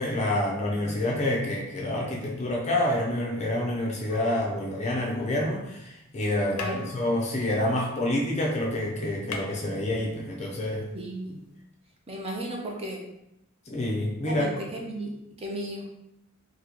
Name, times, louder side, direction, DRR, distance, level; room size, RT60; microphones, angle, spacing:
voice 1, 0.0-10.9 13.7-14.5, left 1 dB, 30° left, -1 dB, 0.6 m, -28 dB
sound 1, 4.1-5.3 6.2-6.3 6.5-8.4 8.7-8.8 9.0-10.4 11.6-11.7, left 4 dB, 85° left, 0.5 m, -41 dB
voice 2, 10.9-11.4 12.1-13.0 14.3-15.8, right 1 dB, 25° right, -1 dB, 0.5 m, -35 dB
3.8 x 2.2 x 2.9 m, 0.84 s
head